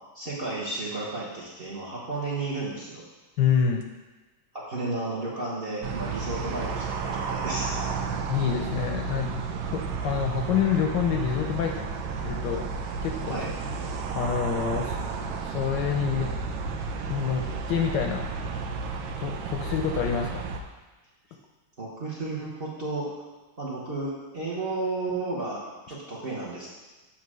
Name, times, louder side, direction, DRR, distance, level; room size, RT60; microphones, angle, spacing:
voice 1, 0.1-3.1 4.5-7.7 13.3-13.5 21.8-23.3 23.6-26.7, right 2 dB, 40° right, -5 dB, 1.0 m, -33 dB
voice 2, 3.4-3.8 8.3-11.8 12.2-12.7 13.0-13.4 14.1-15.0 15.4-16.3 17.1-18.3 19.2-20.4, left 7 dB, 70° left, 2 dB, 1.1 m, -27 dB
sound 1, 5.8-20.6, right 4 dB, 75° right, 1.3 m, -32 dB
7.6 x 2.9 x 6.1 m, 1.2 s
omnidirectional pair, 2.2 m